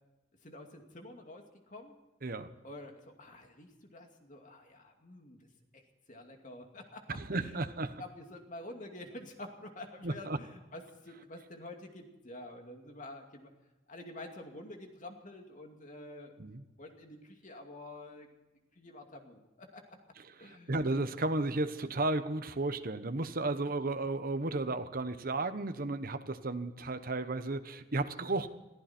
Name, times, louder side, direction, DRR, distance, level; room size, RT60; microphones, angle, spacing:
voice 1, 0.4-1.9 2.6-5.5 5.7-5.8 6.1-7.7 8.0-13.5 13.9-16.3 16.8-18.3 18.7-20.0 20.4-20.8, left 1 dB, 45° left, 3 dB, 2.4 m, -48 dB
voice 2, 7.1-8.0 10.0-10.4 16.4-16.6 20.4-28.5, right 2 dB, 50° right, 9 dB, 1.1 m, -33 dB
22.5 x 14.0 x 4.4 m, 1.0 s
head